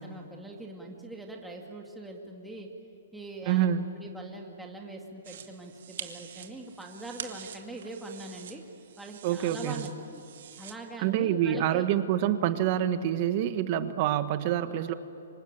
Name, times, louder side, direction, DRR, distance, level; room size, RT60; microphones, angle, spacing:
voice 1, 0.0-2.7 3.1-3.7 3.9-8.6 9.0-10.2 10.6-11.9, right 2 dB, 5° right, 0 dB, 2.0 m, -42 dB
voice 2, 3.4-3.8 9.2-9.8 11.0-14.9, right 11 dB, 35° right, 11 dB, 1.4 m, -26 dB
sound 1, 5.2-10.7, right 9 dB, 60° right, 2.3 m, -45 dB
26.0 x 24.5 x 9.0 m, 2.7 s
hypercardioid pair, 160°, 0 cm